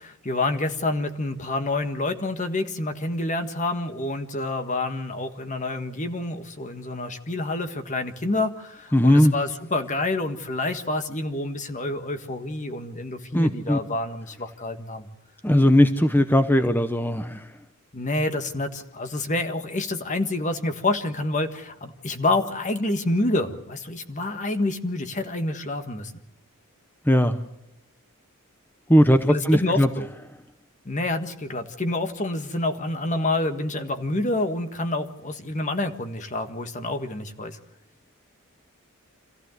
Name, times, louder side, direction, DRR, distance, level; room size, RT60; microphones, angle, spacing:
voice 1, 0.0-15.1 17.9-26.1 29.3-30.1 30.8-37.6, left 2 dB, 35° left, 7 dB, 1.6 m, -28 dB
voice 2, 8.9-9.3 13.3-13.8 15.4-17.5 27.0-27.4 28.9-29.9, left 1 dB, 10° left, 9 dB, 0.8 m, -18 dB
26.5 x 15.0 x 7.9 m, 0.87 s
head